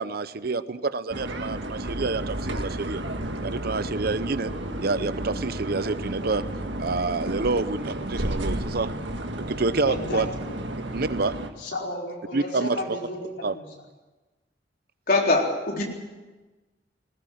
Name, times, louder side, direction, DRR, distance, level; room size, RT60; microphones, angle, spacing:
voice 1, 0.0-3.0 3.4-4.5 4.8-6.4 6.8-8.9 9.4-10.3 10.9-11.3 12.3-12.8 13.4-13.6, right 3 dB, 55° right, 14 dB, 0.8 m, -28 dB
sound 1, 1.1-11.5, right 1 dB, 80° right, 1.8 m, -32 dB
voice 2, 9.8-10.5 11.6-13.6, left 1 dB, 75° left, -1 dB, 4.9 m, -33 dB
voice 3, 15.1-15.9, left 2 dB, 55° left, 0 dB, 4.1 m, -22 dB
20.0 x 18.0 x 7.8 m, 1.2 s
head